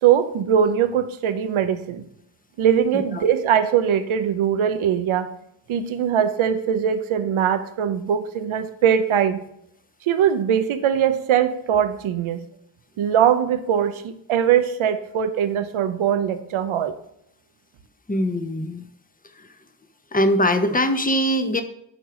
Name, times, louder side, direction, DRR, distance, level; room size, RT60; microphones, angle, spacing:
voice 1, 0.0-2.0 2.6-5.3 5.7-9.4 10.1-12.4 13.0-16.9, right 8 dB, 80° right, 10 dB, 0.7 m, -21 dB
voice 2, 2.9-3.2 18.1-18.9 19.4-19.5 20.1-21.6, equal, 15° left, 7 dB, 1.1 m, -22 dB
9.1 x 4.7 x 5.9 m, 0.74 s
supercardioid pair, 40°, 48 cm